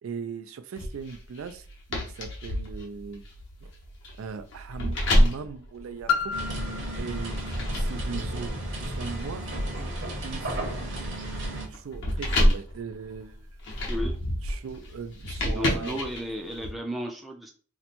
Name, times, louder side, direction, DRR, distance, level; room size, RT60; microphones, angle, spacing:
voice 1, 0.0-3.2 3.6-3.7 4.2-6.3 6.9-9.5 10.2-10.9 11.5-13.6 14.4-16.0, right 5 dB, 75° right, 0.3 m, -39 dB
sound 1, 0.8-6.6 7.2-16.7, equal, 55° left, 0.9 m, -29 dB
Piano, 6.1-11.5 12.2-12.3, left 6 dB, 80° left, 0.3 m, -35 dB
sound 2, 6.3-11.7, right 1 dB, 60° right, 1.0 m, -33 dB
voice 2, 15.4-17.5, equal, ahead, 0.4 m, -34 dB
2.9 x 2.2 x 4.1 m
head